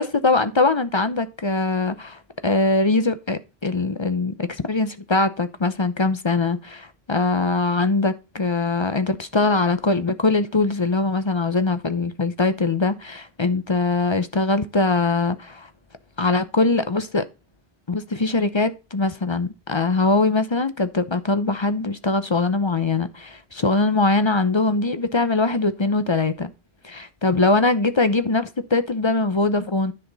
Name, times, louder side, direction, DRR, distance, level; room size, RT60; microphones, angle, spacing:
voice 1, 0.0-15.7 16.2-17.3 17.9-26.5 26.8-29.9, left 3 dB, 30° left, 0.6 m, -22 dB
10.0 x 5.8 x 3.9 m
omnidirectional pair, 1.1 m